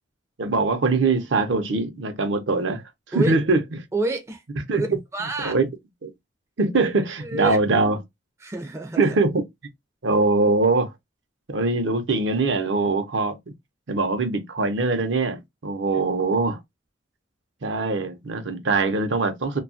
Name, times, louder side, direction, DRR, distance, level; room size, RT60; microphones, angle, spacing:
voice 1, 0.4-2.8 3.1-3.6 4.7-4.8 5.4-5.7 6.0-6.1 6.6-8.0 9.0-9.4 10.0-10.9 11.5-13.3 13.9-16.6 17.6-19.6, right 3 dB, 65° right, 0.6 m, -22 dB
voice 2, 3.1-3.5 3.9-4.4 4.8-4.9 5.1-5.5 7.2-7.6 8.4-9.2, right 2 dB, 15° right, 0.4 m, -28 dB
2.7 x 2.3 x 2.5 m
head